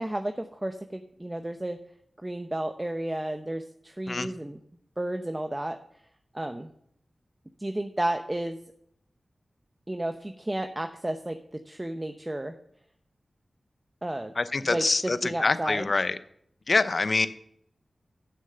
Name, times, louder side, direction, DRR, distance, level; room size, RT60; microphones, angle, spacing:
voice 1, 0.0-1.8 2.2-4.6 5.0-5.8 6.3-6.7 7.6-8.6 9.9-12.5 14.0-14.3 14.7-15.9, right 1 dB, 20° right, 7 dB, 0.8 m, -32 dB
voice 2, 14.4-16.2 16.7-17.3, left 3 dB, 55° left, 13 dB, 0.8 m, -25 dB
11.0 x 6.4 x 6.8 m, 0.71 s
cardioid pair, 50°, 0 cm